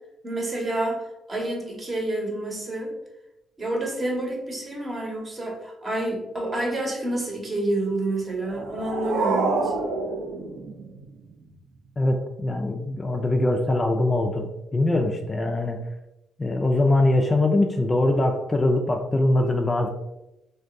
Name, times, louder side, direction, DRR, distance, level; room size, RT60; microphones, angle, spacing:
voice 1, 0.2-2.9 3.6-9.7, right 1 dB, 30° right, 1 dB, 0.9 m, -28 dB
sound 1, 8.3-11.3, right 3 dB, 85° right, 0.5 m, -27 dB
voice 2, 12.0-15.8 16.4-19.9, left 2 dB, 25° left, 3 dB, 0.3 m, -22 dB
2.5 x 2.2 x 3.5 m, 0.91 s
cardioid pair, 90°, 0 cm